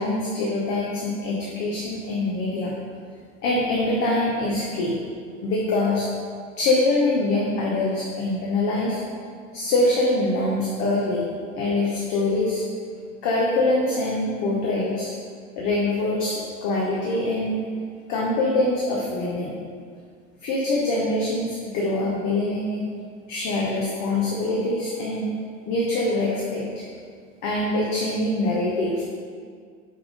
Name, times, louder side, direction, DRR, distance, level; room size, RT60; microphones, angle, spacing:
voice 1, 0.0-2.7 3.4-5.0 5.4-6.1 6.6-9.0 9.5-11.3 11.5-12.6 13.2-15.1 15.6-17.6 18.1-19.6 20.4-22.9 23.3-25.3 25.7-26.8 27.4-29.0, left 2 dB, 45° left, -3 dB, 1.1 m, -24 dB
5.7 x 3.6 x 5.2 m, 2.1 s
figure-of-eight pair, 80°, 40 cm